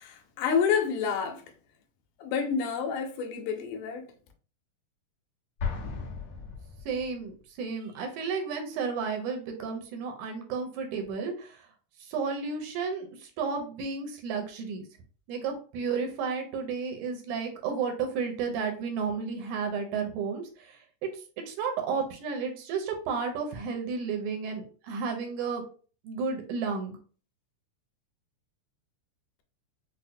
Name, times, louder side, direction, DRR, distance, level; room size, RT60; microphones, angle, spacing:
voice 1, 0.0-1.4 2.2-4.1, left 6 dB, 85° left, 2.2 m, -29 dB
Explosion, 5.6-7.3, left 5 dB, 60° left, 1.6 m, -35 dB
voice 2, 6.9-11.7 12.0-14.8 15.3-21.1 21.5-25.6 26.0-27.0, right 5 dB, 80° right, 2.1 m, -32 dB
5.5 x 2.1 x 2.6 m
omnidirectional pair, 3.6 m